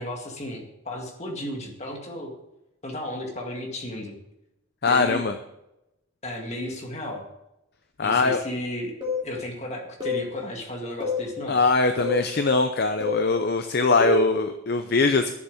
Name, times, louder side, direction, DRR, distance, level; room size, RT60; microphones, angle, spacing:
voice 1, 0.0-2.3 2.8-4.2 4.9-5.3 6.2-7.2 8.0-8.9 9.2-11.6, left 1 dB, 30° left, 2 dB, 2.0 m, -34 dB
voice 2, 4.8-5.3 8.0-8.4 11.5-15.3, left 3 dB, 45° left, 8 dB, 0.6 m, -22 dB
sound 1, 9.0-9.3 10.0-10.3 11.0-11.3 12.0-12.3 13.0-13.3 14.0-14.3, left 1 dB, 20° right, 2.9 m, -27 dB
11.0 x 7.0 x 7.1 m, 0.89 s
head